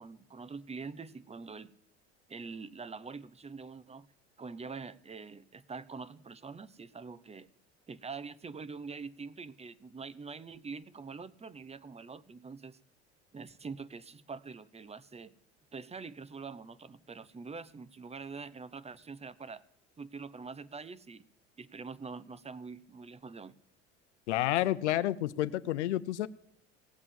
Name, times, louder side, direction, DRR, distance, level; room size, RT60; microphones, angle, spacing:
voice 1, 0.0-1.7 2.3-4.1 4.4-7.5 7.9-12.8 13.3-15.3 15.7-19.6 20.0-21.3 21.6-23.5, right 4 dB, 20° right, 17 dB, 0.9 m, -45 dB
voice 2, 24.3-26.3, left 14 dB, 85° left, 16 dB, 0.7 m, -30 dB
17.5 x 7.9 x 7.6 m, 0.75 s
hypercardioid pair, 75°, 34 cm